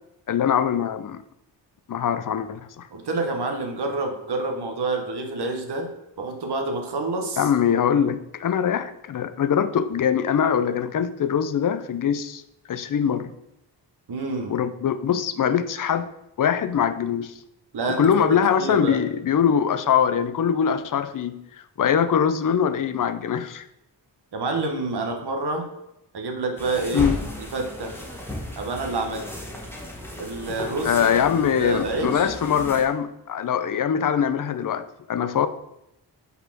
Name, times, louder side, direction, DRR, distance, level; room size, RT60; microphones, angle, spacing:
voice 1, 0.3-1.2 1.9-2.9 7.4-12.4 12.7-13.3 14.5-16.1 16.4-17.3 18.0-23.7 26.9-27.2 30.8-35.5, left 8 dB, 50° left, 12 dB, 0.5 m, -23 dB
voice 2, 2.9-5.9 6.2-7.5 14.1-14.5 17.7-19.0 24.3-25.7 26.1-27.1 27.4-28.0 28.6-29.3 30.2-31.1 31.3-32.3, right 2 dB, 60° right, 4 dB, 1.0 m, -28 dB
sound 1, 26.6-32.8, left 1 dB, 5° left, 1.4 m, -35 dB
5.6 x 4.2 x 5.8 m, 0.85 s
wide cardioid pair, 130°, 43 cm